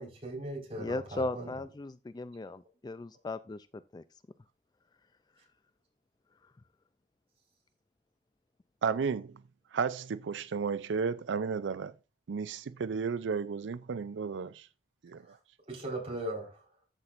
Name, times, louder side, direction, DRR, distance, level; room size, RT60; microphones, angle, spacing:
voice 1, 0.0-1.5 15.2-15.3 15.7-16.6, right 1 dB, 35° right, 4.4 m, -39 dB
voice 2, 0.8-3.7 3.9-4.0, left 2 dB, 25° left, 0.3 m, -37 dB
voice 3, 8.8-9.3 9.7-11.9 12.3-14.7 15.0-15.4, right 5 dB, 90° right, 0.4 m, -33 dB
13.5 x 6.1 x 2.5 m
head